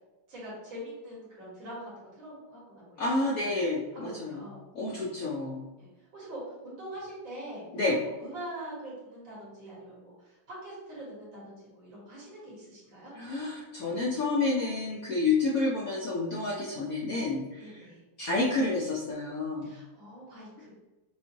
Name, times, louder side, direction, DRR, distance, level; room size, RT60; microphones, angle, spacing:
voice 1, 0.3-3.5 3.9-4.6 5.8-7.6 8.2-13.1 17.6-18.0 19.6-20.7, right 1 dB, 70° right, -6 dB, 2.4 m, -44 dB
voice 2, 3.0-4.4 4.7-5.6 7.7-8.0 13.1-17.8 18.2-19.7, left 3 dB, 65° left, -4 dB, 0.9 m, -29 dB
6.3 x 2.6 x 2.8 m, 1.1 s
omnidirectional pair, 2.2 m